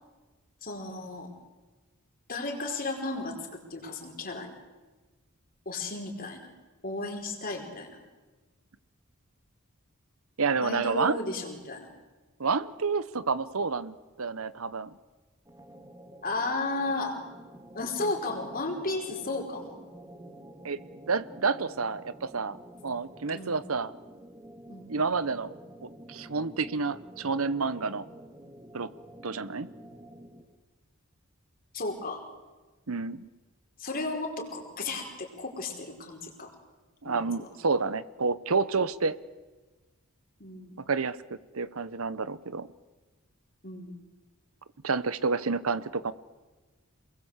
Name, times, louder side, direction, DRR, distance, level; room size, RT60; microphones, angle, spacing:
voice 1, 0.6-1.3 2.3-4.6 5.6-6.5 6.8-8.0 10.6-11.9 16.2-17.2 17.7-19.7 23.3-23.6 24.7-24.9 31.7-32.2 33.8-36.5 37.0-37.5 40.4-40.8 43.6-44.0, left 2 dB, 45° left, 2 dB, 4.9 m, -34 dB
voice 2, 10.4-11.2 12.4-14.9 20.6-20.8 21.1-22.6 22.8-23.9 24.9-25.5 25.8-28.1 28.7-28.9 29.2-29.7 32.9-33.3 37.0-39.2 40.9-42.7 44.8-46.1, right 4 dB, 75° right, 16 dB, 1.0 m, -29 dB
sound 1, 15.5-30.6, right 1 dB, 15° right, 2.1 m, -49 dB
28.0 x 21.5 x 8.2 m, 1.2 s
head